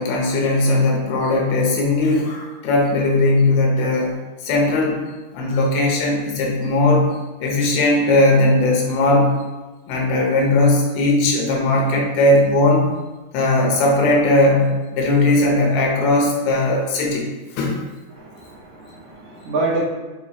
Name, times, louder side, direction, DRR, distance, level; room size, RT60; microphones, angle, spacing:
voice 1, 0.0-4.2 4.4-5.0 5.3-7.1 7.4-9.4 9.9-12.9 13.3-17.3 17.6-17.8, left 2 dB, 75° left, -1 dB, 2.9 m, -18 dB
voice 2, 18.1-19.8, right 3 dB, 60° right, -7 dB, 1.5 m, -26 dB
7.0 x 4.8 x 2.9 m, 1.2 s
omnidirectional pair, 4.6 m